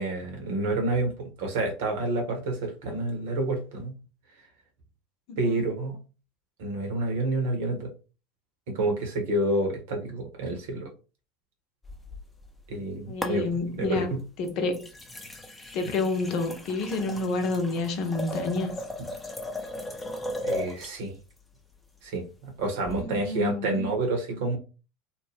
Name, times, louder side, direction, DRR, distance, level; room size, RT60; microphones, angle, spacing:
voice 1, 0.0-4.0 5.4-6.0 6.6-7.9 8.7-10.9 12.7-13.4 13.8-14.2 20.4-21.1 22.0-24.6, right 2 dB, 70° right, 1.0 m, -29 dB
voice 2, 5.3-5.6 13.1-14.1 14.4-14.9 15.7-18.8 22.8-23.9, left 3 dB, 55° left, 0.7 m, -29 dB
sound 1, 11.8-12.8 13.2-13.9 14.4-21.0 22.8-23.0, left 1 dB, 10° left, 0.6 m, -37 dB
2.6 x 2.1 x 3.3 m
hypercardioid pair, 75°, 0 cm